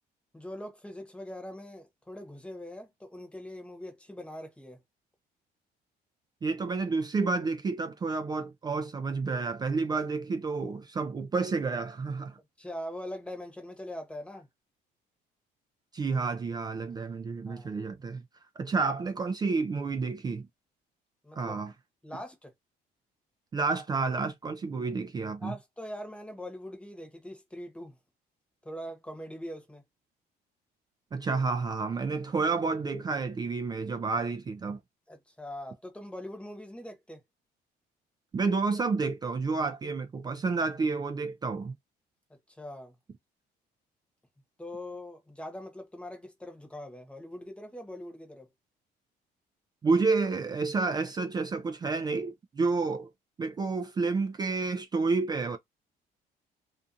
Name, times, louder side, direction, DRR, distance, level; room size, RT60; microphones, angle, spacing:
voice 1, 0.3-4.8 12.6-14.5 17.5-17.9 21.2-21.6 22.0-22.5 25.4-28.0 28.6-29.8 35.1-37.2 42.3-42.9 44.6-48.5, left 1 dB, 5° left, 1.0 m, -42 dB
voice 2, 6.4-12.4 15.9-18.2 18.6-20.5 21.3-21.7 23.5-25.5 31.1-34.8 38.3-41.7 49.8-53.1 53.4-55.6, right 4 dB, 25° right, 0.3 m, -30 dB
2.5 x 2.4 x 2.6 m
cardioid pair, 110°, 17 cm